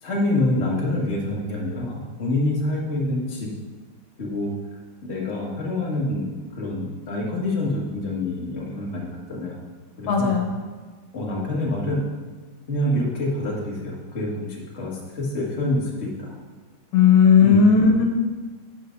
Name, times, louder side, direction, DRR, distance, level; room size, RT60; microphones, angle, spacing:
voice 1, 0.0-3.5 4.2-4.5 5.0-9.6 10.0-10.4 11.1-12.1 12.7-16.4 17.4-17.7, left 1 dB, 30° left, -3 dB, 1.9 m, -26 dB
voice 2, 10.1-10.5 16.9-18.0, left 6 dB, 80° left, 2 dB, 2.0 m, -16 dB
8.8 x 6.4 x 5.2 m, 1.4 s
omnidirectional pair, 2.4 m